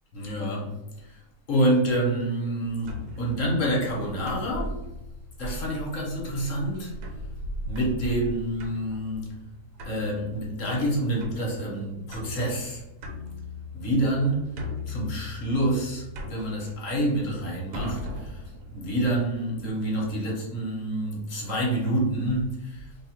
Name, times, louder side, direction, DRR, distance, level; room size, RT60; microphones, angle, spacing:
voice 1, 0.1-0.7 1.0-1.2 1.5-4.8 5.4-6.9 7.7-9.2 9.9-12.8 13.7-14.4 14.9-18.4 18.7-22.9, right 1 dB, 55° left, -3 dB, 1.3 m, -27 dB
sound 1, 2.8-19.7, left 1 dB, 80° right, 1.3 m, -39 dB
3.0 x 2.4 x 4.2 m, 0.93 s
omnidirectional pair, 1.7 m